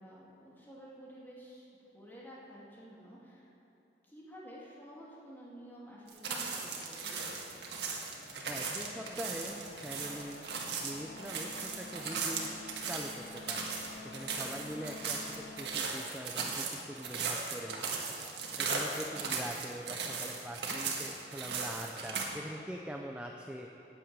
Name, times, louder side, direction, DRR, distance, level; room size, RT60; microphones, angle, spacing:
voice 1, 0.0-1.7 1.9-3.5 4.0-7.6 19.1-19.2, equal, 10° left, -6 dB, 2.3 m, -51 dB
sound 1, 6.1-22.3, right 5 dB, 70° right, 1.6 m, -37 dB
sound 2, 6.8-15.7, left 2 dB, 60° left, 1.1 m, -50 dB
voice 2, 8.4-10.4 10.8-12.5 12.8-13.7 14.0-15.2 15.6-17.9 18.6-23.7, equal, 5° right, 1 dB, 0.5 m, -43 dB
9.0 x 8.6 x 8.7 m, 3.0 s
head